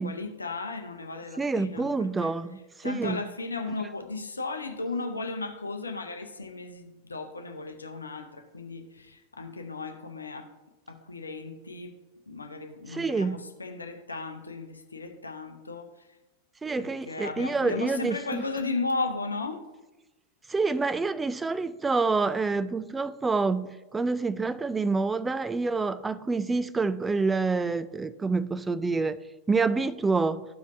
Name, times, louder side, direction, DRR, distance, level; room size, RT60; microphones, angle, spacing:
voice 1, 0.0-1.9 2.2-2.3 2.8-10.5 10.9-11.9 12.3-16.1 16.8-19.6, left 3 dB, 80° left, 0.7 m, -35 dB
voice 2, 1.4-3.2 12.9-13.4 16.6-18.4 20.5-29.2 29.5-30.5, right 4 dB, 10° right, 0.3 m, -27 dB
13.5 x 5.1 x 2.6 m
figure-of-eight pair, 90°, 0 cm